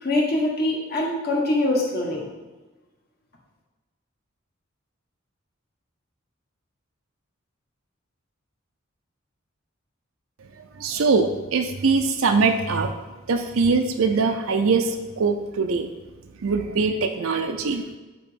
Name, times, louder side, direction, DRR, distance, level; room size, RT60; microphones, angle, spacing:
voice 1, 0.0-2.3, left 1 dB, 50° left, -2 dB, 1.6 m, -23 dB
voice 2, 10.8-12.9 13.3-15.9 16.4-17.8, right 4 dB, 90° right, 5 dB, 0.6 m, -22 dB
8.5 x 3.0 x 5.1 m, 1.2 s
head